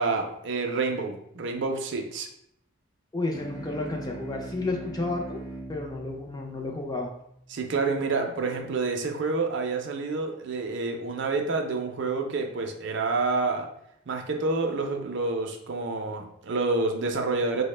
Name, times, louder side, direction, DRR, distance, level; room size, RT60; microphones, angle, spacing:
voice 1, 0.0-2.3 7.5-13.7 14.1-17.6, right 3 dB, 55° right, 3 dB, 0.4 m, -28 dB
voice 2, 3.1-5.4 5.7-7.1, left 2 dB, 20° left, 1 dB, 0.3 m, -31 dB
sound 1, 3.3-8.2, right 2 dB, 35° left, 0.7 m, -42 dB
4.2 x 2.0 x 3.1 m, 0.75 s
head